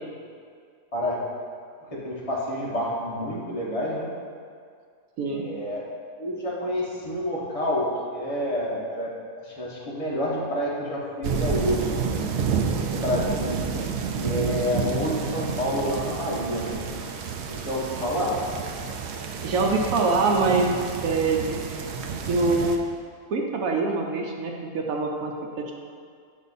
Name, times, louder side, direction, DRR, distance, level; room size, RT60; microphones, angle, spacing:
voice 1, 1.8-4.1 5.3-5.9 6.2-9.1 9.4-12.3 12.9-13.6 14.2-16.8 17.5-18.4, left 1 dB, 25° left, -6 dB, 1.4 m, -28 dB
sound 1, 11.2-22.8, right 6 dB, 65° right, 0.7 m, -30 dB
voice 2, 19.4-20.7 21.0-21.6 22.3-22.7 23.3-25.7, right 3 dB, 80° right, 0 dB, 1.1 m, -24 dB
6.5 x 5.2 x 4.1 m, 2.2 s
omnidirectional pair, 1.4 m